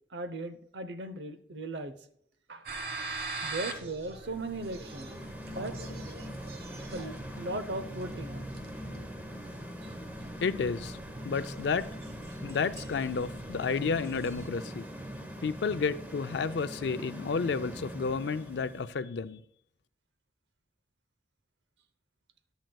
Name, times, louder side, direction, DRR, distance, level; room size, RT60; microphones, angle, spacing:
voice 1, 0.1-1.9 2.5-2.8 3.4-5.1 5.4-5.8 6.9-8.4, right 2 dB, 75° right, 11 dB, 0.8 m, -38 dB
sound 1, 2.7-14.5, right 3 dB, 55° right, 1.1 m, -44 dB
Background noise I, 4.3-18.9, equal, 10° right, 1.0 m, -42 dB
voice 2, 10.4-11.0 11.2-11.9 12.4-14.9 15.4-19.4, left 5 dB, 70° left, 12 dB, 0.4 m, -31 dB
14.0 x 10.5 x 2.3 m, 0.65 s
head